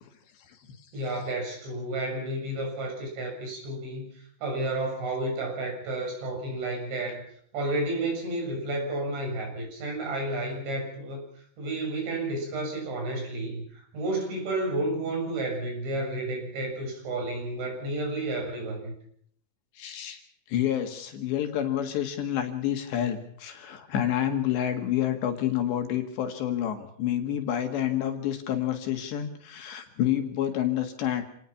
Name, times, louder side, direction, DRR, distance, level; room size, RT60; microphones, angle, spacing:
voice 1, 0.9-4.1 4.4-7.2 7.5-11.2 11.6-18.9, right 2 dB, 65° right, 1 dB, 9.3 m, -31 dB
voice 2, 19.8-20.2 20.5-31.2, left 11 dB, 65° left, 5 dB, 3.8 m, -28 dB
28.0 x 18.5 x 5.9 m, 0.64 s
omnidirectional pair, 5.7 m